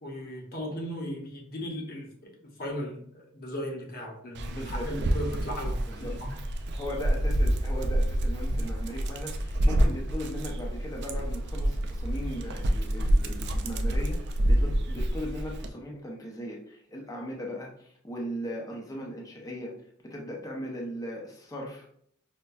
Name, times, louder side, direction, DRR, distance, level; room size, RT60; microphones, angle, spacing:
voice 1, 0.0-2.3 2.6-6.4, equal, 45° left, 0 dB, 0.8 m, -37 dB
Dog, 4.3-15.7, right 1 dB, 50° right, 0.3 m, -28 dB
voice 2, 4.5-4.9 5.9-6.2 6.8-19.8 20.0-21.9, equal, 15° left, -1 dB, 0.5 m, -38 dB
5.3 x 2.1 x 2.2 m, 0.66 s
head